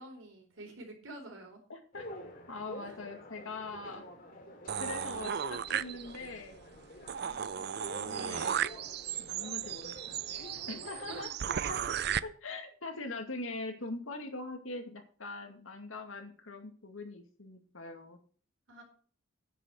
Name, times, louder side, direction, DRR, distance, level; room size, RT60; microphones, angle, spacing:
voice 1, 0.0-1.6 2.8-3.0 7.2-7.8 11.1-11.9 18.7-18.8, right 1 dB, 80° right, 2 dB, 4.3 m, -49 dB
voice 2, 1.7-2.1 2.5-4.0 4.8-6.6 7.8-8.6 9.2-10.2 10.7-11.3 11.7-11.8 12.4-18.2, left 2 dB, 85° left, 5 dB, 2.3 m, -42 dB
sound 1, 1.9-11.2, equal, 45° left, 2.9 m, -49 dB
sound 2, 4.7-6.4 6.8-6.9 7.1-12.2, right 8 dB, 50° right, 0.4 m, -35 dB
10.0 x 6.3 x 7.8 m, 0.42 s
head